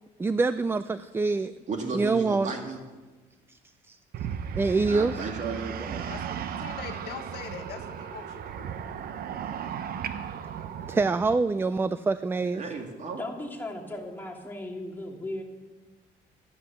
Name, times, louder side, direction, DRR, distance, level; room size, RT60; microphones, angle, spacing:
voice 1, 0.2-1.5 1.9-2.5 3.5-3.6 3.9-4.0 4.6-5.3 10.9-12.6, right 3 dB, 15° right, 14 dB, 0.3 m, -25 dB
voice 2, 1.7-2.8 4.9-6.0 12.5-13.2, right 4 dB, 45° right, 3 dB, 2.4 m, -34 dB
sound 1, 4.1-11.4, right 8 dB, 60° right, 0.9 m, -36 dB
voice 3, 6.1-8.7, left 9 dB, 75° left, 6 dB, 1.4 m, -42 dB
voice 4, 13.2-15.4, left 1 dB, 10° left, 0 dB, 2.4 m, -36 dB
13.0 x 9.6 x 6.9 m, 1.3 s
cardioid pair, 110°, 17 cm